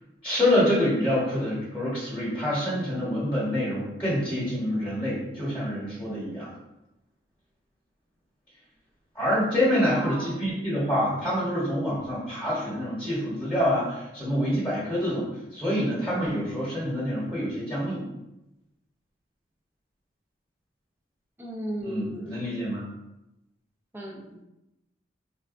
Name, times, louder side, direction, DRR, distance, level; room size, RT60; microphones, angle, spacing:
voice 1, 0.2-6.5 9.1-18.0 21.8-22.9, equal, 10° left, -10 dB, 1.0 m, -26 dB
voice 2, 9.8-10.4 21.4-22.6 23.9-24.4, right 1 dB, 10° right, -2 dB, 0.4 m, -36 dB
3.9 x 2.2 x 2.5 m, 0.94 s
head